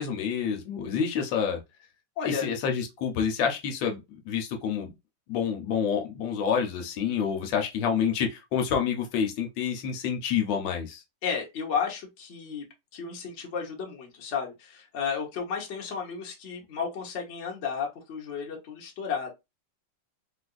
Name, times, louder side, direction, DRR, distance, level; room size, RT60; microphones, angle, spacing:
voice 1, 0.0-1.6 2.2-4.0 4.3-4.9 5.3-11.0, left 7 dB, 80° left, 1.4 m, -28 dB
voice 2, 2.2-2.5 11.2-12.6 12.9-19.3, left 6 dB, 45° left, 1.0 m, -33 dB
3.7 x 2.5 x 2.3 m
omnidirectional pair, 2.1 m